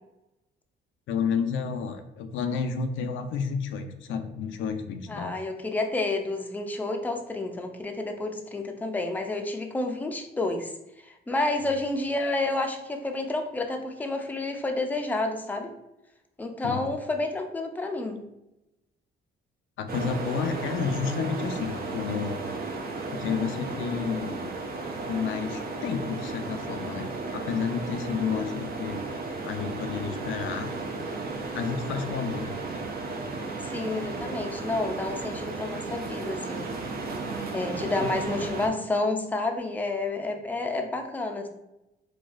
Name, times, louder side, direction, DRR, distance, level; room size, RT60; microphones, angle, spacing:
voice 1, 1.1-5.3 16.6-16.8 19.8-22.4 23.1-24.5 25.1-29.0 29.4-30.7 31.5-32.5 38.0-38.1, left 6 dB, 75° left, 7 dB, 0.4 m, -31 dB
voice 2, 5.1-10.7 11.0-15.7 16.4-18.2 33.6-36.6 37.5-41.5, left 2 dB, 10° left, 4 dB, 0.4 m, -30 dB
sound 1, 19.9-38.7, right 3 dB, 50° right, 0.6 m, -34 dB
4.0 x 2.3 x 2.4 m, 0.90 s
cardioid pair, 90°, 20 cm